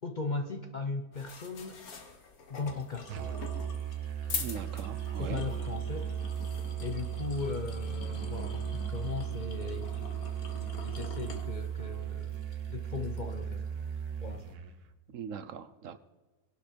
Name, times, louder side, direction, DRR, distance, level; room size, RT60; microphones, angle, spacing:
voice 1, 0.0-1.8 2.5-3.2 5.2-6.1 6.8-10.1 10.6-12.4 12.7-13.7 14.2-14.4, left 4 dB, 40° left, 7 dB, 0.8 m, -38 dB
sound 1, 1.1-14.5, left 5 dB, 75° left, 1.9 m, -45 dB
Musical instrument, 3.1-14.8, right 9 dB, 85° right, 1.4 m, -36 dB
voice 2, 4.3-5.4 15.1-16.0, right 7 dB, 65° right, 13 dB, 1.0 m, -41 dB
20.5 x 11.5 x 4.5 m, 1.2 s
omnidirectional pair, 1.6 m